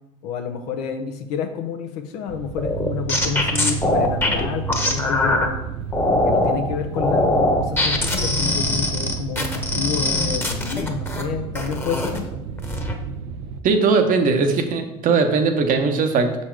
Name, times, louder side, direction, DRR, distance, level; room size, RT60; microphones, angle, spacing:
voice 1, 0.2-5.6 6.1-12.4, left 7 dB, 75° left, 6 dB, 0.8 m, -29 dB
sound 1, 2.3-13.6, right 7 dB, 75° right, 0.5 m, -31 dB
sound 2, 2.6-5.5 5.9-6.6 7.0-11.2 11.5-12.2 12.6-12.9, left 2 dB, 15° left, 1.1 m, -22 dB
voice 2, 13.6-16.4, right 4 dB, 55° right, 6 dB, 1.0 m, -19 dB
6.2 x 4.2 x 4.7 m, 0.93 s
hypercardioid pair, 70°, 16 cm